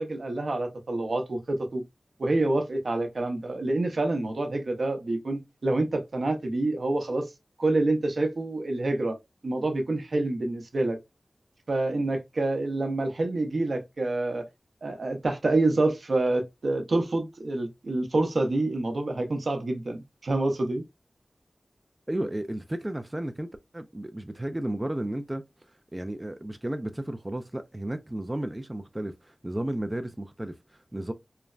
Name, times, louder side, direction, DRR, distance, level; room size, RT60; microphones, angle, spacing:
voice 1, 0.0-1.8 2.2-7.3 7.6-9.2 9.4-11.0 11.7-14.5 14.8-20.8, right 2 dB, 70° right, 0.6 m, -27 dB
voice 2, 22.1-23.5 23.7-25.4 25.9-31.1, right 1 dB, 20° right, 0.3 m, -33 dB
3.2 x 2.1 x 2.3 m
wide cardioid pair, 85°, 0 cm